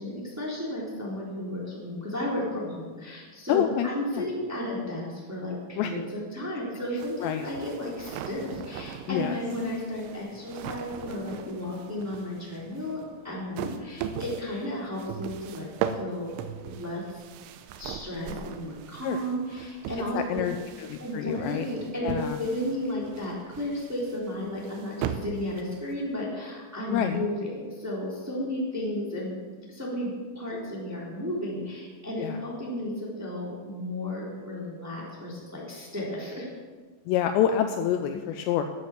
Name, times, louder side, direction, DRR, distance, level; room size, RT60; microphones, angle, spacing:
voice 1, 0.0-15.7 16.0-16.3 16.6-17.2 17.8-20.4 21.0-29.4 29.7-36.5 38.1-38.2, left 1 dB, 5° right, -5 dB, 2.5 m, -33 dB
voice 2, 3.5-3.9 4.1-4.2 5.8-5.9 7.2-7.5 9.1-9.4 19.0-19.2 20.1-21.6 22.0-22.4 26.9-27.2 32.2-32.4 37.1-38.6, left 10 dB, 90° left, 7 dB, 2.5 m, -27 dB
sound 1, 7.0-26.2, right 8 dB, 80° right, 3.2 m, -39 dB
13.0 x 9.7 x 7.3 m, 1.5 s
omnidirectional pair, 5.8 m